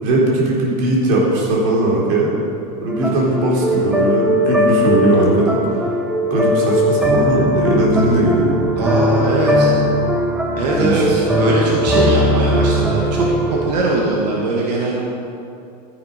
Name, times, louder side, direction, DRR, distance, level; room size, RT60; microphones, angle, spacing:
voice 1, 0.0-2.3 2.8-5.9 6.3-8.5 10.7-11.1, right 1 dB, 50° right, -3 dB, 3.5 m, -18 dB
sound 1, 2.9-13.7, equal, 5° right, 0.6 m, -19 dB
voice 2, 8.8-9.7 10.6-15.0, right 2 dB, 85° right, -2 dB, 2.0 m, -21 dB
12.5 x 10.5 x 5.2 m, 2.7 s
supercardioid pair, 170°, 21 cm